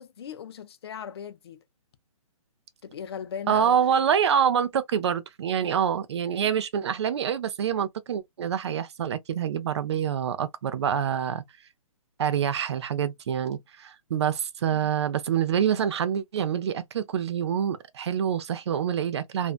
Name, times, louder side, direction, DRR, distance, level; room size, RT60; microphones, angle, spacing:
voice 1, 0.0-1.6 2.8-4.0 14.7-14.9, left 8 dB, 45° left, 0.4 m, -39 dB
voice 2, 3.5-11.4 12.2-19.5, right 8 dB, 50° right, 0.4 m, -26 dB
2.5 x 2.2 x 2.4 m
hypercardioid pair, 160°, 18 cm